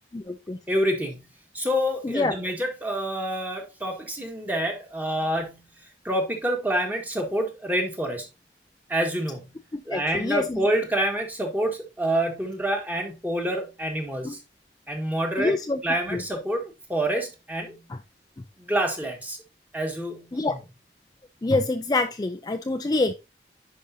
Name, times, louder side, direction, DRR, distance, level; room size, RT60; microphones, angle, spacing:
voice 1, 0.1-0.6 2.0-2.3 9.7-10.6 14.2-14.3 15.4-15.8 16.1-16.2 17.9-18.0 20.3-20.6 21.4-23.1, left 2 dB, 20° left, 0.3 m, -26 dB
voice 2, 0.7-5.7 6.0-8.3 8.9-9.6 9.8-14.4 14.9-15.5 15.8-17.8 18.6-19.4 19.7-20.6, right 1 dB, 10° right, 1.5 m, -27 dB
10.0 x 5.4 x 2.7 m
head